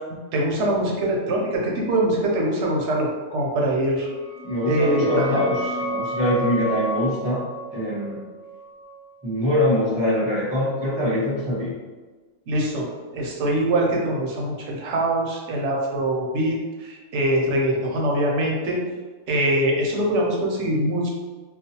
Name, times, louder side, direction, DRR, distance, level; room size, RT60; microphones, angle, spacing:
voice 1, 0.3-4.1 4.6-5.5 12.5-12.9 13.1-18.8 19.3-21.1, right 1 dB, 70° right, -2 dB, 0.8 m, -23 dB
sound 1, 4.0-9.4, right 1 dB, 35° left, 0.7 m, -31 dB
voice 2, 4.4-7.4 7.7-8.2 9.2-11.7, left 1 dB, 5° right, -9 dB, 0.8 m, -23 dB
2.4 x 2.1 x 2.7 m, 1.3 s
omnidirectional pair, 1.3 m